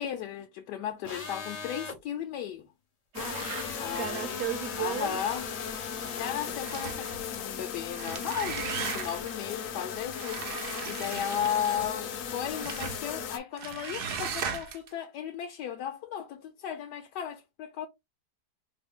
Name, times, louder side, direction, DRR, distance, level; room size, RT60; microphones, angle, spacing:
voice 1, 0.0-2.7 3.8-4.4 4.8-5.5 6.1-10.4 10.8-17.9, left 9 dB, 80° left, 1.1 m, -35 dB
sound 1, 1.0-2.0 3.2-6.5, left 4 dB, 45° left, 0.5 m, -41 dB
sound 2, 3.1-13.4, left 7 dB, 60° left, 0.9 m, -37 dB
voice 2, 3.1-5.2 5.5-5.6, right 11 dB, 65° right, 1.0 m, -35 dB
sound 3, 6.6-7.2 7.8-9.3 10.1-11.9 12.6-13.0 13.6-14.9, right 6 dB, 85° right, 0.5 m, -37 dB
4.9 x 2.0 x 3.6 m
omnidirectional pair, 1.9 m